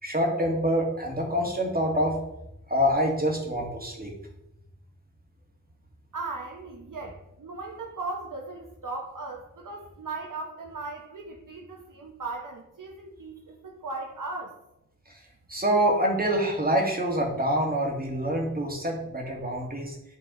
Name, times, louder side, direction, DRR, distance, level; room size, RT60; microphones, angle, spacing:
voice 1, 0.0-2.2 2.7-4.1 15.1-15.2 15.5-20.0, equal, 25° right, 0 dB, 2.0 m, -26 dB
voice 2, 6.1-14.5, right 3 dB, 70° right, 2 dB, 1.0 m, -37 dB
11.0 x 3.9 x 3.8 m, 0.84 s
wide cardioid pair, 60°, 33 cm